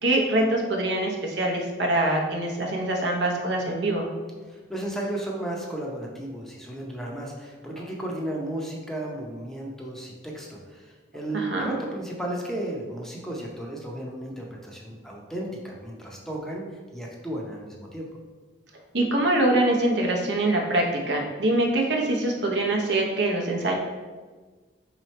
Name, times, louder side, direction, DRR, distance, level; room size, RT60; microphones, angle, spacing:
voice 1, 0.0-4.1 11.3-11.7 18.9-23.7, right 1 dB, 70° right, 0 dB, 0.7 m, -24 dB
voice 2, 4.5-16.6 16.9-18.1, right 1 dB, ahead, -2 dB, 0.6 m, -34 dB
3.9 x 3.1 x 4.2 m, 1.4 s
head